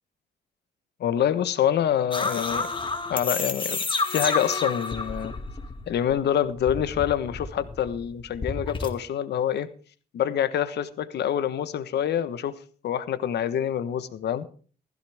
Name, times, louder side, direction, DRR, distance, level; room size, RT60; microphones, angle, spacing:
voice 1, 1.0-2.7 3.1-3.8 4.1-5.3 5.9-9.7 10.1-12.5 12.8-14.5, left 10 dB, 75° left, 12 dB, 1.3 m, -26 dB
sound 1, 2.1-6.1 6.4-8.9, left 3 dB, 30° left, 2.2 m, -30 dB
15.5 x 14.5 x 3.6 m, 0.40 s
cardioid pair, 95°, 18 cm